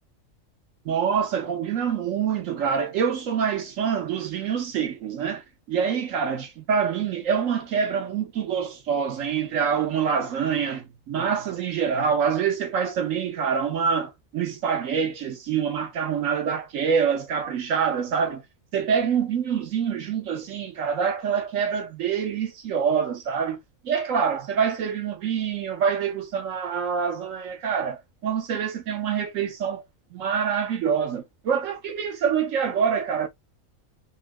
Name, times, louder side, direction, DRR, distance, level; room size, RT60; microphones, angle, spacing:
voice 1, 0.8-5.4 5.7-18.4 18.7-23.6 23.8-29.8 30.1-33.3, right 7 dB, 75° right, 1.2 m, -26 dB
3.8 x 2.2 x 2.4 m
omnidirectional pair, 1.4 m